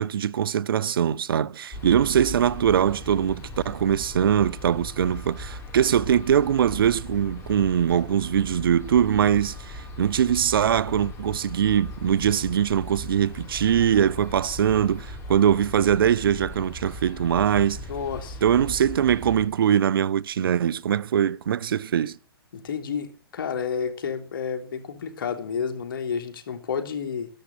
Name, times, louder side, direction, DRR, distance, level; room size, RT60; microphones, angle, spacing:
voice 1, 0.0-17.8 18.4-22.2, right 9 dB, 65° right, 0.8 m, -22 dB
sound 1, 1.7-19.5, left 1 dB, 20° left, 7.4 m, -38 dB
voice 2, 17.9-18.4 22.5-27.3, left 6 dB, 60° left, 3.3 m, -30 dB
13.5 x 12.0 x 7.3 m
figure-of-eight pair, 120°, 13 cm